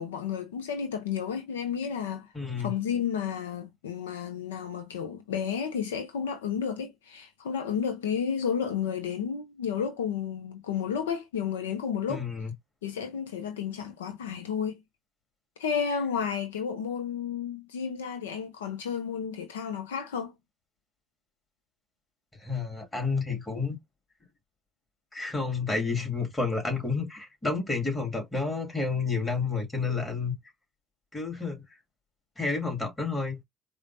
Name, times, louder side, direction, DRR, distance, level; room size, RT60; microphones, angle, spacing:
voice 1, 0.0-2.3 2.6-12.2 12.8-14.8 15.6-20.3, left 7 dB, 85° left, 0.5 m, -32 dB
voice 2, 2.3-2.7 12.1-12.5 22.4-23.8 25.1-30.3 31.1-31.6 32.4-33.4, left 4 dB, 20° left, 2.4 m, -30 dB
4.9 x 2.1 x 2.7 m
hypercardioid pair, 60°, 0 cm